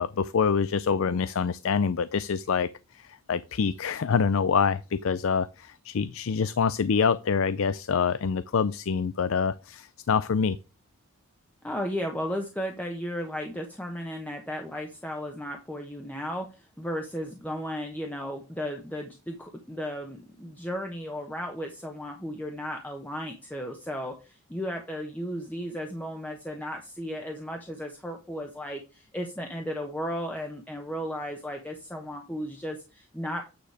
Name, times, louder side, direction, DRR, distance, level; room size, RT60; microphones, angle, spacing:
voice 1, 0.0-10.6, left 6 dB, 70° left, 0.4 m, -26 dB
voice 2, 11.6-33.4, equal, 5° left, 1.0 m, -35 dB
9.2 x 5.0 x 4.8 m
head